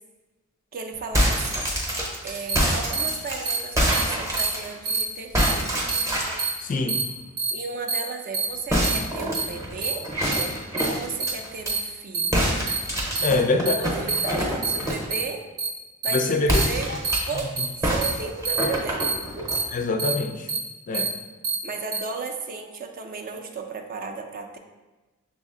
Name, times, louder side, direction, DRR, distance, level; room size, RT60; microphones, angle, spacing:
voice 1, 0.7-1.6 2.2-5.8 7.5-10.0 10.9-12.5 13.3-13.4 13.8-15.4 16.0-16.9 17.3-19.1 21.6-24.6, right 4 dB, 40° right, 4 dB, 0.4 m, -34 dB
sound 1, 1.0-5.0 5.3-6.5 8.7-11.7 12.3-15.1 16.4-17.4 17.8-19.6, equal, 15° right, 0.7 m, -26 dB
sound 2, 2.5-2.6 2.9-3.1 3.4-3.6 3.9-4.0 4.4-4.5 4.8-5.0 5.4-5.5 5.9-6.0 6.4-6.5 6.9-7.0 7.4-7.5 7.9-8.0 8.3-8.4 8.8-9.0 9.3-9.4 9.8-9.9 10.3-10.4 10.8-10.9 11.2-11.3 11.7-11.8 12.1-12.3 12.7-12.8 13.1-13.3 13.6-13.7 14.1-14.2 14.6-14.8 15.1-15.2 15.6-15.7 16.0-16.2 16.5-16.6 17.0-17.2 17.6-17.7 18.0-18.1 18.4-18.6 19.0-19.1 19.5-19.6 20.0-20.1 20.5-20.6 20.9-21.1 21.4-21.5 21.9-22.0, right 5 dB, 85° right, 0.8 m, -25 dB
voice 2, 6.6-7.1 13.2-13.7 16.1-17.0 19.7-20.5 20.9-21.1, left 3 dB, 40° left, 5 dB, 0.3 m, -24 dB
6.0 x 2.1 x 3.6 m, 1.2 s
head